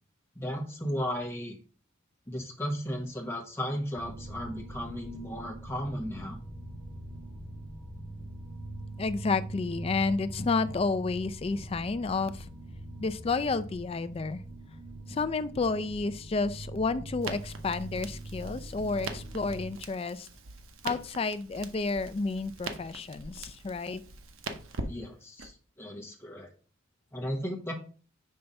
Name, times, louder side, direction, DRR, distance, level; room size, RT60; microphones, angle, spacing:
voice 1, 0.3-1.6 2.3-6.4 24.9-25.5 25.8-26.5 27.1-27.7, equal, 10° left, 1 dB, 1.1 m, -35 dB
sound 1, 3.9-19.7, right 2 dB, 20° right, 1.2 m, -42 dB
voice 2, 9.0-12.5 13.0-14.4 15.1-20.3 20.8-24.0, left 4 dB, 30° left, 13 dB, 0.3 m, -31 dB
Crackle, 17.2-25.5, right 3 dB, 85° right, 0.8 m, -42 dB
5.5 x 3.4 x 5.2 m, 0.39 s
head